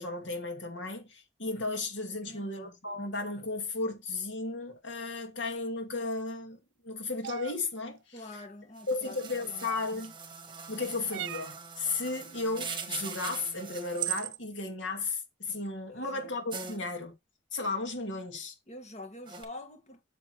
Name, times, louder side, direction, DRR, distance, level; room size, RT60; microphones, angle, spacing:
voice 1, 0.0-6.6 6.8-8.0 8.9-10.1 10.7-17.1 17.5-18.5, left 3 dB, 85° left, 2.4 m, -34 dB
voice 2, 2.2-2.8 8.1-9.7 15.9-16.3 18.7-20.0, left 2 dB, 40° left, 1.7 m, -46 dB
sound 1, 7.2-7.6 9.6-10.1 11.1-11.6 13.3-13.4 13.9-14.4, right 14 dB, 70° right, 0.3 m, -36 dB
sound 2, 8.8-14.2 16.5-16.8 19.3-19.4, right 5 dB, 25° right, 1.5 m, -42 dB
7.8 x 6.8 x 3.1 m
head